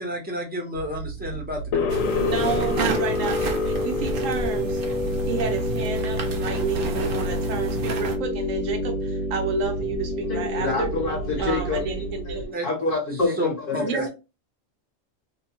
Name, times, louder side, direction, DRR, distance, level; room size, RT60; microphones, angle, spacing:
voice 1, 0.0-2.2 12.5-12.6 13.4-14.1, equal, 10° right, 0.6 m, -31 dB
sound 1, 0.7-12.5, right 3 dB, 30° left, 0.7 m, -34 dB
sound 2, 1.7-12.6, left 3 dB, 80° left, 0.9 m, -28 dB
sound 3, 1.9-8.2, right 4 dB, 60° right, 0.6 m, -32 dB
voice 2, 2.0-4.8 5.3-10.9 11.4-12.6 13.8-14.1, right 5 dB, 75° right, 1.1 m, -30 dB
voice 3, 10.3-11.8 12.3-14.1, left 3 dB, 50° left, 0.9 m, -27 dB
2.7 x 2.2 x 2.8 m
omnidirectional pair, 1.4 m